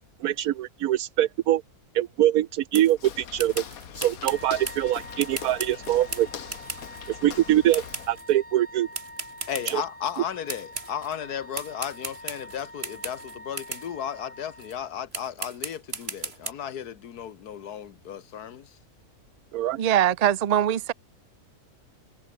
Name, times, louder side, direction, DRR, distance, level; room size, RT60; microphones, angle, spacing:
voice 1, 0.2-1.6 1.9-3.6 4.0-6.3 7.2-8.9 9.7-9.8 19.5-19.8, right 13 dB, 75° right, 1.2 m, -23 dB
sound 1, 2.7-3.0 3.4-7.1 7.7-8.3 8.9-10.2 10.5-11.2 11.5-13.9 14.6-14.8 15.1-16.5, right 3 dB, 40° right, 2.7 m, -37 dB
Walk footsteps, 2.9-8.2, left 8 dB, 65° left, 1.6 m, -41 dB
Wind instrument woodwind instrument, 4.2-15.0, left 1 dB, 20° left, 8.2 m, -46 dB
voice 2, 9.5-18.7, left 9 dB, 85° left, 1.7 m, -35 dB
voice 3, 19.8-20.9, right 10 dB, 90° right, 0.3 m, -22 dB
omnidirectional pair, 1.6 m